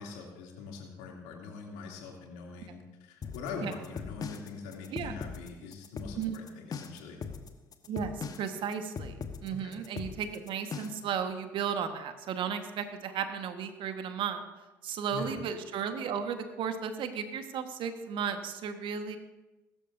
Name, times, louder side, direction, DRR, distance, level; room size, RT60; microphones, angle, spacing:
voice 1, 0.0-7.2 9.5-9.7 15.1-15.4, left 4 dB, 70° left, 0 dB, 2.9 m, -43 dB
sound 1, 3.2-11.1, left 5 dB, 40° left, 1.3 m, -40 dB
voice 2, 8.4-9.2 9.4-14.4 14.8-19.2, right 7 dB, 55° right, 7 dB, 1.5 m, -34 dB
21.5 x 12.5 x 2.7 m, 1.1 s
figure-of-eight pair, 55°, 10 cm